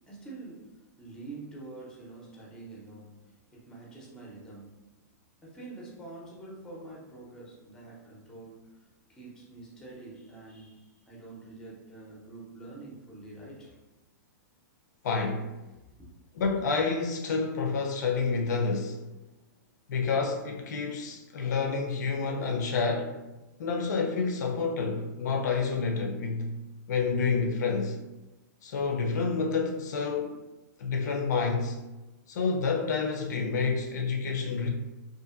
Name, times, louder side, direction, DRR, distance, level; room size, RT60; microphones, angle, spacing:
voice 1, 0.1-4.8 5.4-13.7 15.7-16.1, right 2 dB, 5° left, 0.6 m, -46 dB
voice 2, 15.0-15.5 16.4-19.0 19.9-23.2 23.6-26.6 26.9-28.0 28.6-30.4 30.8-31.8 32.3-34.8, left 4 dB, 70° left, 0.4 m, -29 dB
2.6 x 2.5 x 2.4 m
hypercardioid pair, 155°, 10 cm